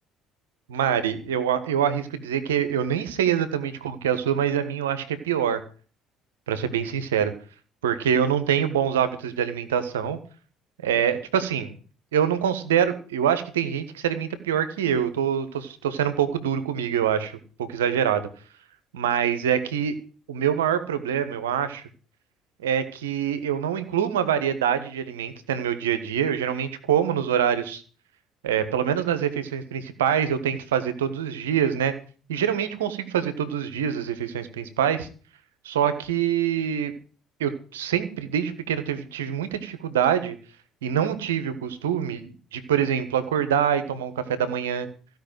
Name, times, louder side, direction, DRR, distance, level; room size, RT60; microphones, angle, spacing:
voice 1, 0.7-5.6 6.5-7.3 7.8-10.2 10.8-11.7 12.1-18.3 18.9-19.9 20.3-21.8 22.6-27.8 28.4-31.9 32.3-35.1 35.6-36.9 37.4-40.3 40.8-42.2 42.5-44.9, right 9 dB, 70° right, 12 dB, 1.4 m, -25 dB
15.5 x 5.7 x 9.1 m, 0.40 s
figure-of-eight pair, 55°, 0 cm